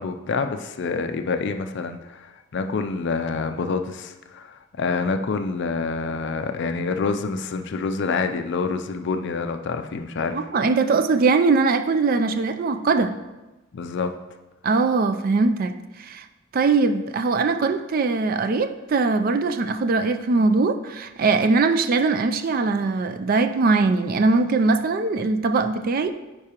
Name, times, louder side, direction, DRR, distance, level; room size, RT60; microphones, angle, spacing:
voice 1, 0.0-10.5 13.7-14.1, left 4 dB, 55° left, 7 dB, 0.4 m, -27 dB
voice 2, 10.3-13.2 14.6-15.7 16.0-16.2 16.5-26.1, right 3 dB, 45° right, 9 dB, 0.3 m, -21 dB
9.6 x 4.7 x 2.9 m, 1.1 s
head